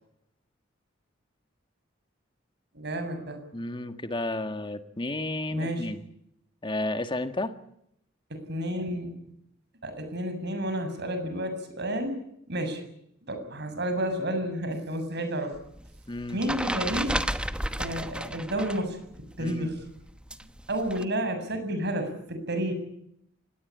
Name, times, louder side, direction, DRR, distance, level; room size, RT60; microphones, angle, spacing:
voice 1, 2.7-3.4 5.5-5.9 8.3-9.1 9.8-12.2 12.5-12.8 13.2-15.5 16.3-17.2 17.8-19.0 19.4-19.9 20.7-22.7, right 1 dB, 60° right, 8 dB, 7.3 m, -31 dB
voice 2, 3.5-6.0 6.6-7.5 16.1-16.4 19.4-19.7, left 2 dB, 25° left, 9 dB, 1.8 m, -32 dB
sound 1, 15.5-18.9 19.1-21.0, right 1 dB, 5° right, 1.0 m, -33 dB
25.0 x 20.0 x 8.6 m, 0.74 s
head